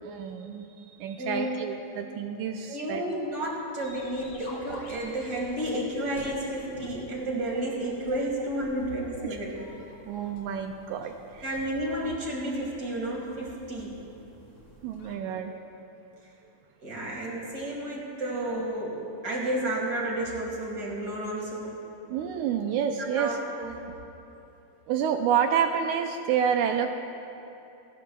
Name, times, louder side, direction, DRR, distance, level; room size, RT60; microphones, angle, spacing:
voice 1, 0.0-3.0 10.1-11.6 14.8-15.6 22.1-23.4 24.9-26.9, right 8 dB, 80° right, 5 dB, 1.9 m, -29 dB
voice 2, 1.2-1.5 2.7-9.6 11.4-13.9 16.8-21.8 23.1-23.9, right 1 dB, 35° right, -2 dB, 2.0 m, -31 dB
sound 1, 3.8-15.2, left 1 dB, 45° left, 1.8 m, -49 dB
26.5 x 11.5 x 2.3 m, 2.8 s
omnidirectional pair, 3.7 m